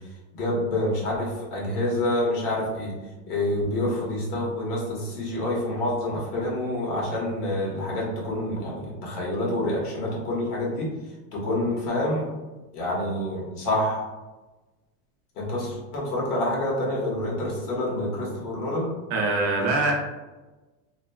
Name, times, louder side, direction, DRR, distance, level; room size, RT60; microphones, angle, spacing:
voice 1, 0.3-2.9 3.3-10.9 11.3-12.3 12.7-14.0 15.4-18.9, left 1 dB, 80° left, -3 dB, 1.3 m, -27 dB
voice 2, 19.1-19.9, right 3 dB, 40° right, -1 dB, 0.5 m, -23 dB
2.9 x 2.4 x 2.2 m, 1.1 s
supercardioid pair, 150°, 45 cm